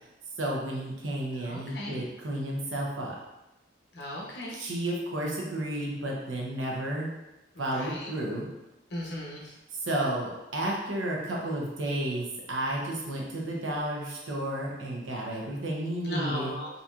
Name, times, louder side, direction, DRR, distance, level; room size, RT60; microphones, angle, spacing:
voice 1, 0.4-3.2 4.5-7.1 7.6-8.5 9.8-16.6, right 1 dB, 80° right, -2 dB, 0.8 m, -32 dB
voice 2, 1.5-1.9 3.9-4.7 7.5-8.1 8.9-9.4 16.0-16.7, left 1 dB, 55° left, -3 dB, 0.8 m, -37 dB
3.9 x 2.9 x 2.4 m, 0.97 s
head